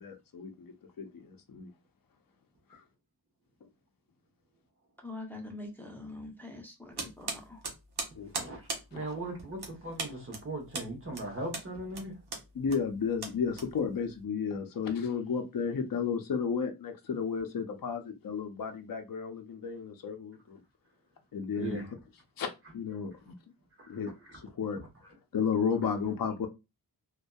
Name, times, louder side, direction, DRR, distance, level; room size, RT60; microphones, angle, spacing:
voice 1, 0.0-1.7 2.7-2.8 8.2-8.5 8.9-9.0 12.5-20.6 21.3-21.8 22.4-23.3 23.9-24.8 25.3-26.5, left 6 dB, 55° left, 0.6 m, -33 dB
voice 2, 5.0-7.6, left 2 dB, 5° left, 0.7 m, -44 dB
sound 1, 7.0-14.2, right 3 dB, 70° right, 0.8 m, -40 dB
voice 3, 8.4-12.2 21.6-21.9 23.8-24.4, right 2 dB, 35° right, 1.0 m, -39 dB
2.5 x 2.2 x 2.3 m
wide cardioid pair, 70°, 40 cm